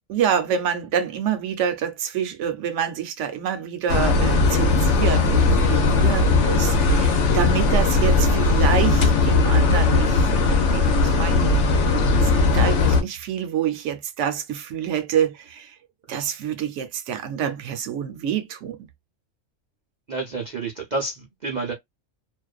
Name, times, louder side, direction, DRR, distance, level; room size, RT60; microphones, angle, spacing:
voice 1, 0.1-11.6 12.2-15.7 16.1-18.9, right 8 dB, 70° right, 0.9 m, -27 dB
sound 1, 3.9-13.0, left 3 dB, 65° left, 1.0 m, -18 dB
voice 2, 20.1-21.7, right 3 dB, 50° right, 0.5 m, -29 dB
2.5 x 2.2 x 2.3 m
omnidirectional pair, 1.4 m